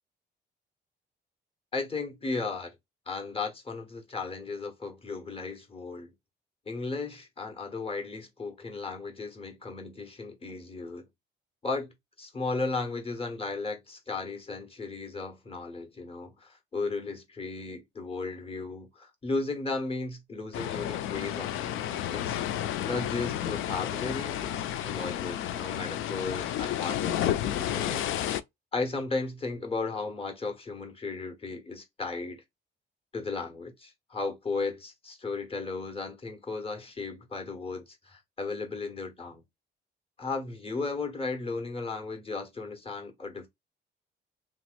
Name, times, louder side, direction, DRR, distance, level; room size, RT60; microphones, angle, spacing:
voice 1, 1.7-2.7 3.1-6.1 6.7-11.1 11.6-22.4 22.8-28.3 28.7-32.4 33.1-39.4 40.2-43.5, left 3 dB, 30° left, 1.2 m, -35 dB
sound 1, 20.5-28.4, left 11 dB, 85° left, 0.4 m, -31 dB
3.0 x 2.9 x 2.4 m
cardioid pair, 90°, 20 cm